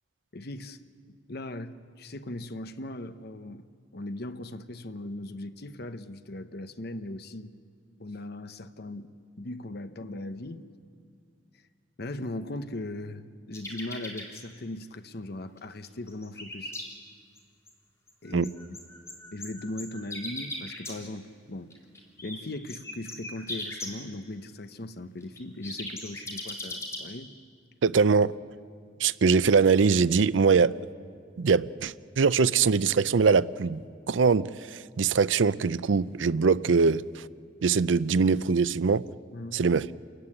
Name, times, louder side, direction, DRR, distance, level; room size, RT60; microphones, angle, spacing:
voice 1, 0.3-0.8 1.1-3.6 3.9-7.5 8.0-9.1 9.4-10.7 12.0-16.7 18.2-18.8 19.3-21.7 22.2-27.3 39.3-39.6, left 1 dB, 55° left, 0.9 m, -38 dB
sound 1, 13.5-14.4 15.6-15.7 15.9-16.8 17.4-17.5 17.7-17.8 18.1-20.9 21.7-22.4 22.7-23.9 25.2-27.0, left 2 dB, 15° left, 3.9 m, -38 dB
voice 2, 27.8-28.3 29.0-30.8 31.4-37.3 37.6-39.0 39.5-39.9, right 5 dB, 85° right, 0.5 m, -23 dB
29.0 x 15.0 x 9.9 m
head